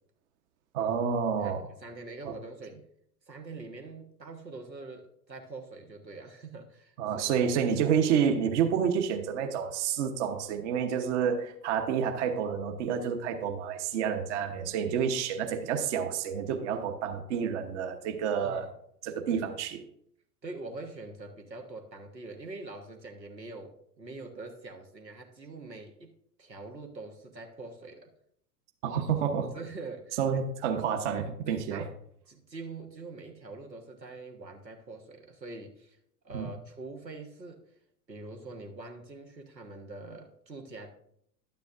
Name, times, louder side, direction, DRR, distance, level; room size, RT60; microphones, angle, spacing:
voice 1, 0.7-1.7 2.3-2.4 7.0-18.7 19.0-19.8 28.8-29.5 30.2-31.8 36.3-36.5, right 7 dB, 45° right, 5 dB, 1.1 m, -29 dB
voice 2, 1.4-2.8 3.3-7.3 18.4-18.6 20.4-28.1 29.5-30.4 31.5-31.9 32.3-36.0 36.2-37.6 38.1-40.9, right 3 dB, 85° right, 3 dB, 1.3 m, -44 dB
12.0 x 9.3 x 2.5 m, 0.71 s
figure-of-eight pair, 95°, 49 cm